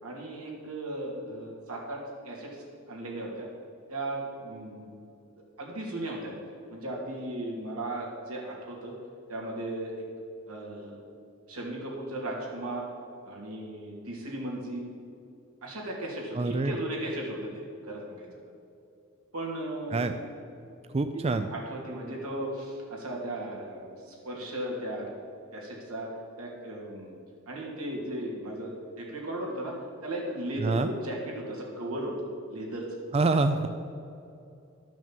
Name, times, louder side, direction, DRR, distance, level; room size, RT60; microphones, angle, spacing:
voice 1, 0.0-3.5 3.9-4.9 5.6-6.3 6.7-8.9 9.3-10.0 10.5-11.0 11.5-12.9 13.2-14.8 15.6-18.3 19.3-20.1 21.1-21.2 21.5-25.1 25.5-26.1 26.4-27.2 27.5-28.7 29.0-29.7 30.0-32.1 32.5-33.0, right 1 dB, 90° right, -2 dB, 2.7 m, -36 dB
voice 2, 16.3-16.7 19.9-20.1 20.9-21.5 30.6-30.9 33.1-33.7, right 3 dB, 30° right, 8 dB, 0.4 m, -26 dB
12.5 x 6.2 x 7.3 m, 2.6 s
head